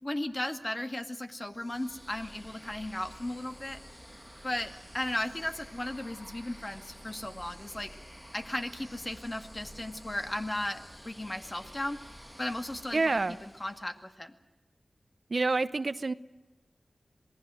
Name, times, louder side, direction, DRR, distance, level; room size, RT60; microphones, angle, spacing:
voice 1, 0.0-3.8 4.4-7.9 8.3-12.0 12.4-13.1 13.4-14.3, left 1 dB, 25° left, 7 dB, 2.0 m, -36 dB
sound 1, 1.4-14.1, equal, 10° left, 6.6 m, -50 dB
voice 2, 12.9-13.4 15.3-16.1, right 3 dB, 55° right, 14 dB, 0.8 m, -27 dB
27.0 x 19.5 x 7.7 m, 1.1 s
wide cardioid pair, 60°, 0 cm